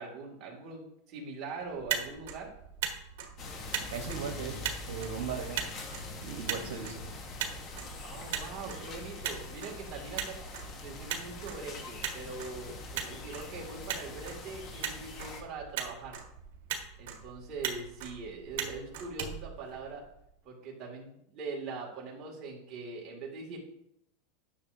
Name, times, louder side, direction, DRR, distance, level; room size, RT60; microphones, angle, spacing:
voice 1, 0.0-2.5 8.0-16.2 17.0-20.0 20.4-23.6, right 4 dB, 35° right, -2 dB, 2.3 m, -42 dB
Motor vehicle (road), 1.7-20.2, right 8 dB, 70° right, 1.4 m, -40 dB
sound 1, 3.4-15.4, left 3 dB, 35° left, 1.1 m, -44 dB
voice 2, 3.8-5.7 6.2-7.0, right 6 dB, 85° right, 3 dB, 1.1 m, -38 dB
10.0 x 6.5 x 2.7 m, 0.73 s
supercardioid pair, 150°, 0 cm